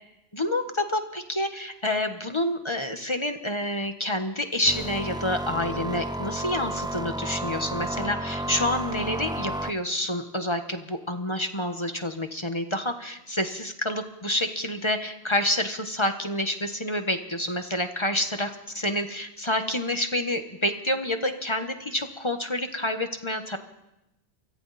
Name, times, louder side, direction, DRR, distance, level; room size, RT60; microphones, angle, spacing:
voice 1, 0.3-18.5 18.8-23.6, left 1 dB, 25° left, 6 dB, 1.4 m, -28 dB
sound 1, 4.7-9.7, right 1 dB, 5° right, 0.5 m, -32 dB
30.0 x 24.0 x 4.3 m, 0.91 s
omnidirectional pair, 1.2 m